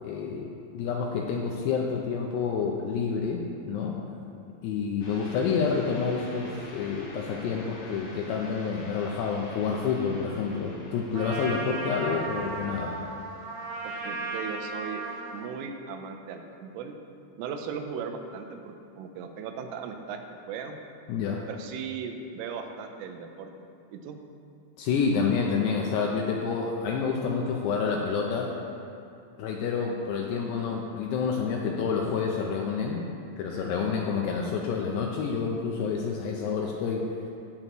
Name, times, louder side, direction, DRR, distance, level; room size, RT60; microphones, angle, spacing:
voice 1, 0.0-4.0 4.6-13.0 21.1-21.4 24.8-28.5 29.4-33.0 33.4-37.0, left 5 dB, 85° left, -1 dB, 2.4 m, -28 dB
sound 1, 5.0-12.2, left 1 dB, 60° left, 3.8 m, -46 dB
Trumpet, 11.1-15.5, right 3 dB, 70° right, 2.3 m, -35 dB
voice 2, 13.8-15.0 15.3-16.9 17.4-20.8 21.5-23.5 23.9-24.2, right 6 dB, 90° right, 5 dB, 3.4 m, -37 dB
18.0 x 7.1 x 3.0 m, 2.5 s
omnidirectional pair, 5.7 m